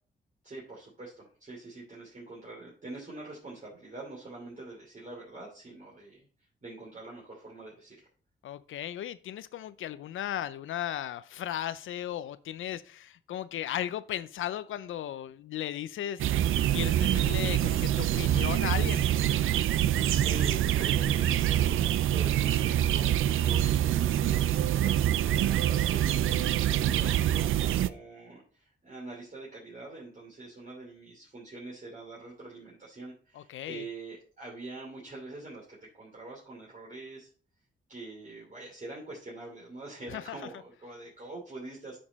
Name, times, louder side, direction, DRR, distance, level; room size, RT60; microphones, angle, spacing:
voice 1, 0.4-6.3 6.6-8.1 19.9-37.3 37.9-42.0, right 2 dB, 40° right, -5 dB, 3.0 m, -44 dB
voice 2, 8.4-16.2 16.7-19.1 33.3-33.9 40.1-40.2, left 11 dB, 85° left, 14 dB, 0.5 m, -36 dB
sound 1, 16.2-27.9, right 11 dB, 85° right, 0.4 m, -25 dB
8.6 x 5.3 x 4.1 m, 0.42 s
cardioid pair, 80°, 20 cm